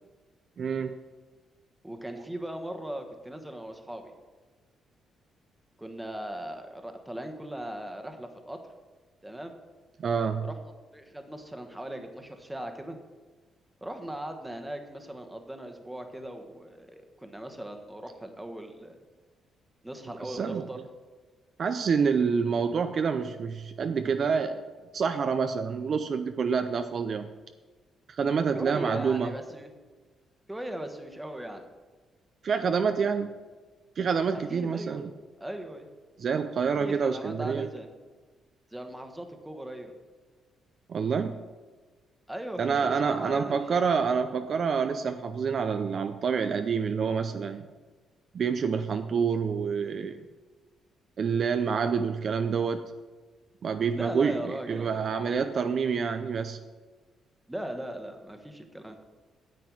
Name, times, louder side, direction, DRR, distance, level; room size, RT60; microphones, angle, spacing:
voice 1, 0.6-1.0 10.0-10.5 20.2-20.7 21.6-24.7 24.9-27.3 28.2-29.3 32.4-33.3 34.0-35.1 36.2-37.7 40.9-41.4 42.6-47.7 48.3-50.2 51.2-52.8 53.6-56.6, right 6 dB, 50° right, 8 dB, 0.5 m, -27 dB
voice 2, 1.8-4.1 5.8-8.6 9.2-9.5 10.4-10.5 10.9-13.0 13.8-19.0 19.8-20.8 28.5-29.7 30.5-31.7 34.5-35.0 35.4-35.9 36.8-37.9 38.7-39.9 42.3-43.8 51.9-52.0 53.9-55.3 57.5-59.0, right 1 dB, 5° right, 6 dB, 1.2 m, -39 dB
9.3 x 7.7 x 4.7 m, 1.3 s
cardioid pair, 90°, 0 cm